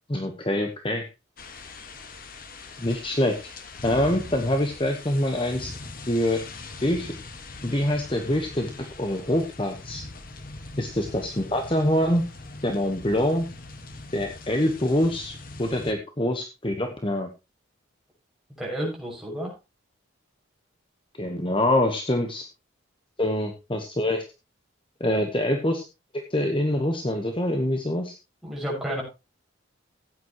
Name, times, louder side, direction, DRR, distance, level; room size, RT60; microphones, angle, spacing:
voice 1, 0.1-1.1 2.8-3.4 3.8-5.7 6.1-6.4 6.8-7.1 7.6-8.7 9.0-10.0 10.8-12.2 12.6-13.4 14.1-17.3 21.2-22.5 23.2-24.2 25.0-25.8 26.3-28.1, left 1 dB, 25° left, 5 dB, 1.2 m, -25 dB
sound 1, 1.4-15.9, left 3 dB, 45° left, 1.6 m, -41 dB
voice 2, 18.6-19.5 25.0-25.2 28.4-29.0, equal, ahead, -3 dB, 6.3 m, -31 dB
15.5 x 9.3 x 3.0 m, 0.26 s
head